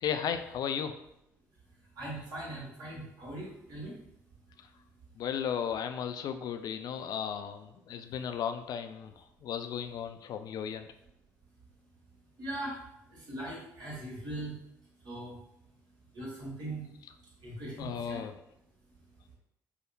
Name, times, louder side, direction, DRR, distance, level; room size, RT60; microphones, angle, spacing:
voice 1, 0.0-0.9 5.2-9.1 9.4-10.9 17.8-18.3, left 8 dB, 50° left, 8 dB, 0.3 m, -35 dB
voice 2, 2.0-4.0 12.4-12.8 13.1-14.6 15.0-15.3 16.1-16.9 17.4-18.2, right 1 dB, 55° right, -5 dB, 1.4 m, -40 dB
4.9 x 2.1 x 2.7 m, 0.82 s
figure-of-eight pair, 45°, 8 cm